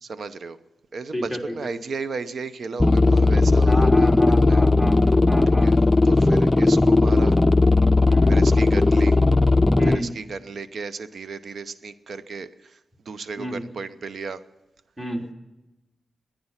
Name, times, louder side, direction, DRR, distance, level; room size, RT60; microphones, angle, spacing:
voice 1, 0.0-0.6 0.9-4.1 4.5-4.6 5.5-5.8 6.0-7.4 8.3-9.2 9.8-12.8 13.0-14.4, right 4 dB, 70° right, 14 dB, 0.8 m, -34 dB
voice 2, 1.1-1.6 3.6-5.0 5.3-5.7 8.1-8.4 9.8-10.1 13.4-13.6 15.0-15.3, equal, 15° right, 1 dB, 3.7 m, -30 dB
sound 1, 2.8-10.0, left 2 dB, 20° left, 0.6 m, -17 dB
20.0 x 10.0 x 5.9 m, 1.0 s
cardioid pair, 55°, 0 cm